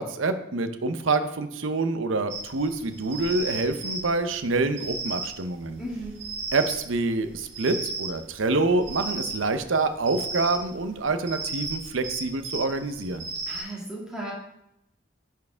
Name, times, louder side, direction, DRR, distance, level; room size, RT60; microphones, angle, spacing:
voice 1, 0.0-5.8 6.5-13.3, right 3 dB, 80° right, 10 dB, 0.7 m, -26 dB
sound 1, 2.3-13.6, right 2 dB, 55° right, 2.3 m, -35 dB
voice 2, 5.8-6.2 13.5-14.3, right 1 dB, 5° right, -6 dB, 2.1 m, -35 dB
10.5 x 4.6 x 3.5 m, 0.80 s
head